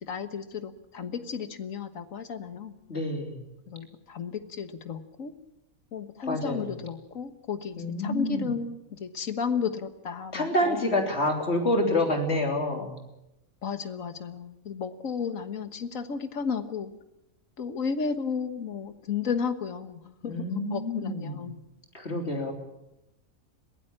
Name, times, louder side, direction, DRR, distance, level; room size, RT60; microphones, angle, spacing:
voice 1, 0.0-2.7 3.7-5.3 5.9-10.9 13.6-16.9 17.6-21.6, left 6 dB, 70° left, 10 dB, 1.8 m, -33 dB
voice 2, 2.9-3.4 6.2-6.7 7.8-8.5 10.3-12.9 20.2-21.5 21.9-22.5, left 1 dB, 50° left, 3 dB, 3.6 m, -27 dB
22.0 x 16.0 x 8.8 m, 0.89 s
omnidirectional pair, 1.5 m